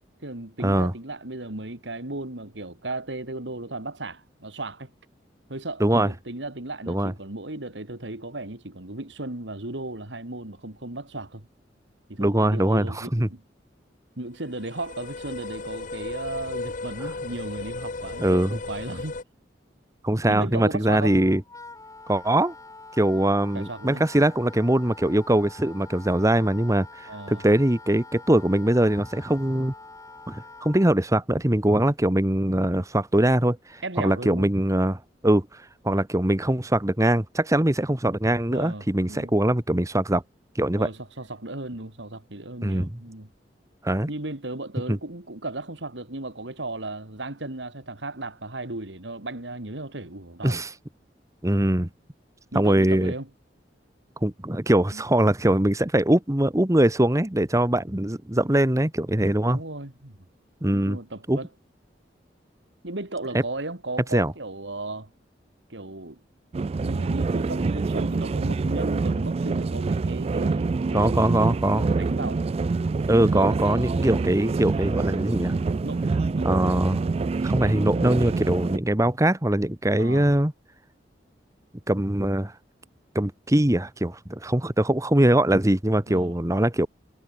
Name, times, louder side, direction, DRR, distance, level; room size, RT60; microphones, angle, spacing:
voice 1, 0.2-4.9 5.5-11.5 12.1-13.4 14.2-19.2 20.3-21.2 23.5-24.0 27.1-27.4 33.8-34.5 38.5-39.3 40.7-43.3 44.1-50.6 52.5-53.3 54.9-55.0 59.4-60.2 60.7-61.5 62.8-65.1 65.7-66.2 66.7-72.4 75.8-76.9 80.0-80.4 86.1-86.4, right 2 dB, 90° right, 3.0 m, -35 dB
voice 2, 12.2-13.3 18.2-18.6 20.0-21.4 22.1-22.5 23.0-29.7 30.3-40.2 40.5-40.9 42.6-42.9 43.8-44.1 44.9-45.0 50.4-50.7 51.4-51.9 52.5-53.1 54.2-59.6 60.6-61.0 61.3-61.4 63.3-63.4 64.1-64.3 70.9-71.9 73.1-75.6 76.4-77.0 77.4-80.5 81.9-82.5 83.1-86.9, right 1 dB, 20° right, 1.3 m, -22 dB
sound 1, 14.4-19.2, left 3 dB, 45° left, 0.9 m, -35 dB
Wind instrument woodwind instrument, 21.0-31.0, left 3 dB, 20° left, 3.5 m, -45 dB
sound 2, 66.5-78.8, right 3 dB, 35° right, 0.3 m, -26 dB
head